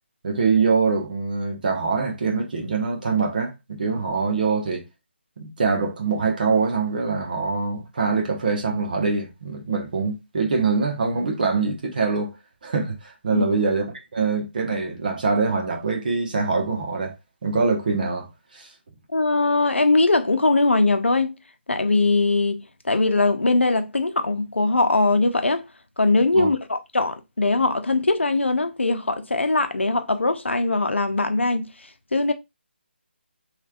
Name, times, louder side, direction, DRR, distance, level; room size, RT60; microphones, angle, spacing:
voice 1, 0.2-4.8 5.4-12.3 12.6-13.8 14.1-17.1 17.4-18.7 26.3-26.5, right 4 dB, 50° right, 1.1 m, -24 dB
voice 2, 19.1-21.3 21.7-25.6 26.0-31.7 32.1-32.3, left 2 dB, 90° left, 0.6 m, -21 dB
3.2 x 3.1 x 2.4 m
figure-of-eight pair, 155°, 6 cm